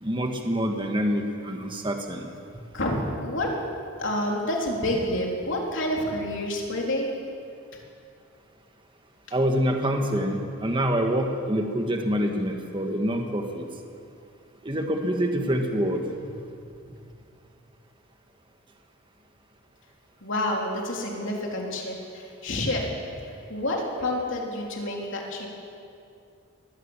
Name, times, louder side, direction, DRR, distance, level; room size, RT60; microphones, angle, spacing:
voice 1, 0.0-2.3 9.3-13.6 14.6-16.0, equal, 20° right, 3 dB, 1.6 m, -26 dB
voice 2, 2.7-3.5 4.0-7.1 20.2-22.8 23.2-25.5, left 1 dB, 60° left, -1 dB, 3.7 m, -28 dB
21.5 x 17.0 x 7.4 m, 2.5 s
head